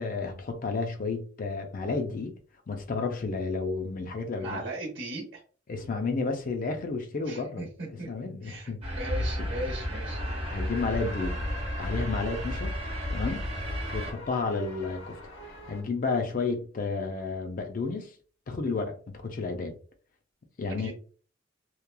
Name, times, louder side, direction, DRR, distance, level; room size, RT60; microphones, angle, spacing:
voice 1, 0.0-2.3 2.7-4.6 5.7-8.8 9.6-9.7 10.5-11.4 11.8-12.7 13.1-13.5 13.9-15.2 15.5-18.1 18.5-19.7 20.6-20.9, left 4 dB, 45° left, 0.4 m, -31 dB
voice 2, 4.4-5.4 7.3-7.7 8.0-8.1 8.4-10.2 20.8-20.9, right 1 dB, 65° right, 0.9 m, -37 dB
sound 1, 8.8-14.1, equal, 30° right, 0.6 m, -32 dB
sound 2, 10.1-15.8, left 1 dB, 75° left, 0.9 m, -46 dB
2.9 x 2.3 x 2.2 m
head